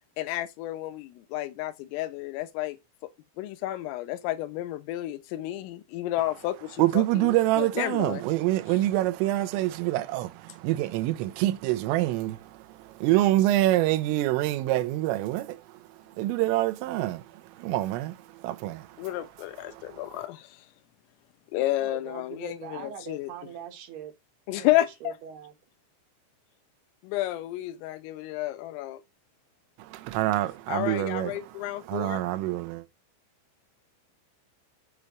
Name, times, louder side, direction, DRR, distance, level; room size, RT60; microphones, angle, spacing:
voice 1, 0.2-2.8 3.4-8.2 19.0-20.7 21.5-23.3 24.5-25.2 27.0-29.0 30.7-32.2, left 15 dB, 90° left, 3.7 m, -31 dB
voice 2, 6.8-19.1 19.7-20.3 29.8-32.9, right 15 dB, 85° right, 3.5 m, -26 dB
voice 3, 21.8-24.1 24.5-25.5, right 9 dB, 65° right, 3.0 m, -42 dB
8.1 x 6.6 x 7.2 m
omnidirectional pair, 5.7 m